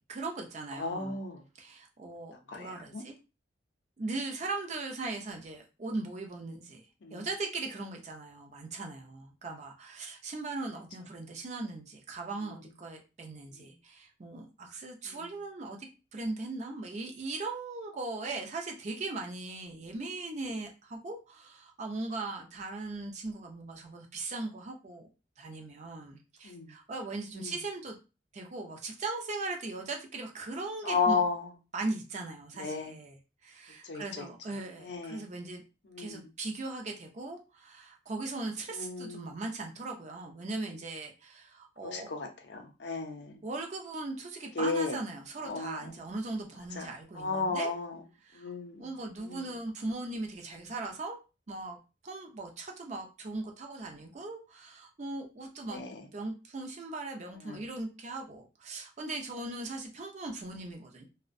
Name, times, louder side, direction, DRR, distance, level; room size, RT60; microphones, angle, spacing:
voice 1, 0.1-1.2 1.6-3.1 4.0-6.8 7.1-25.1 25.4-28.0 28.3-31.2 31.7-35.6 36.0-42.1 43.4-47.7 48.2-48.5 48.8-51.2 51.5-51.8 52.0-61.0, right 2 dB, 35° right, 2 dB, 0.4 m, -39 dB
voice 2, 0.7-1.4 2.5-3.0 7.0-7.3 13.6-13.7 15.1-15.3 26.4-26.7 27.4-27.5 30.8-31.5 32.6-32.9 33.8-34.3 34.8-35.2 35.9-36.3 38.7-39.4 41.8-43.3 44.6-45.0 45.4-45.9 46.8-48.0 48.3-48.9 49.2-49.5 55.7-56.0 57.4-57.6, left 4 dB, 65° left, 4 dB, 0.5 m, -34 dB
2.5 x 2.1 x 2.5 m, 0.30 s
head